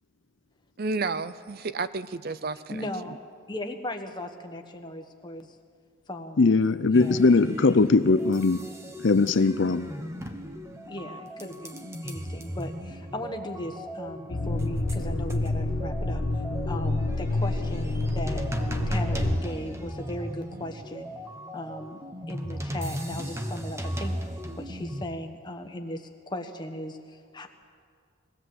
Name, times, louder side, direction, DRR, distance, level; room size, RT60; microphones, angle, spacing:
voice 1, 0.8-3.2, right 3 dB, 45° right, 14 dB, 0.5 m, -32 dB
voice 2, 2.7-3.2 3.5-5.5 6.1-6.4 6.9-7.2 10.9-16.2 16.7-18.4 18.9-21.1 21.5-22.0 22.3-24.1 24.6-27.5, left 1 dB, 20° left, 5 dB, 1.3 m, -37 dB
voice 3, 6.4-8.6 9.0-9.9, left 3 dB, 55° left, 12 dB, 0.5 m, -20 dB
sound 1, 6.9-25.1, equal, 15° right, 1.1 m, -36 dB
sound 2, 14.3-19.4, left 2 dB, 80° left, 1.3 m, -28 dB
22.0 x 17.0 x 7.9 m, 2.2 s
head